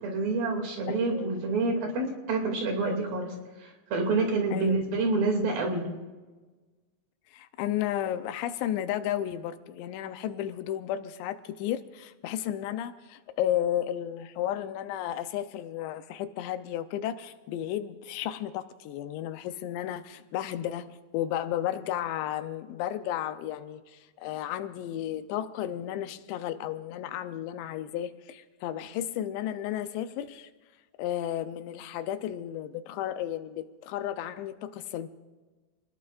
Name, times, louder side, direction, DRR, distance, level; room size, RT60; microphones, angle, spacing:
voice 1, 0.0-3.3 3.6-5.9, right 3 dB, 60° right, 4.3 m, -28 dB
voice 2, 0.9-1.4 4.5-4.8 7.3-30.5 31.0-35.1, left 11 dB, 90° left, 3.1 m, -33 dB
28.0 x 20.0 x 2.6 m
omnidirectional pair, 5.0 m